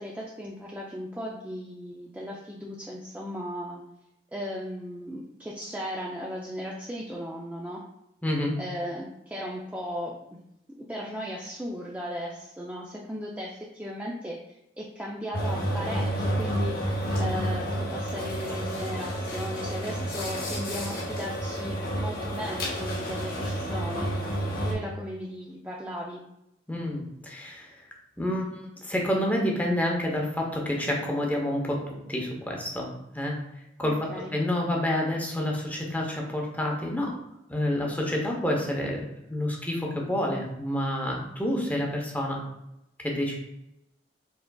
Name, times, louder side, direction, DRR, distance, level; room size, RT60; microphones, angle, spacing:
voice 1, 0.0-3.8 4.3-7.8 8.6-10.4 10.8-16.8 17.2-24.2 24.6-26.2 33.8-34.3, equal, 10° right, -3 dB, 0.4 m, -36 dB
voice 2, 8.2-8.6 26.7-27.8 28.2-32.9 33.1-33.4 33.8-37.1 37.5-42.4 43.0-43.4, left 1 dB, 10° left, -1 dB, 0.7 m, -28 dB
sound 1, 15.3-24.7, equal, 55° left, 1.0 m, -30 dB
4.7 x 3.7 x 2.3 m, 0.86 s
head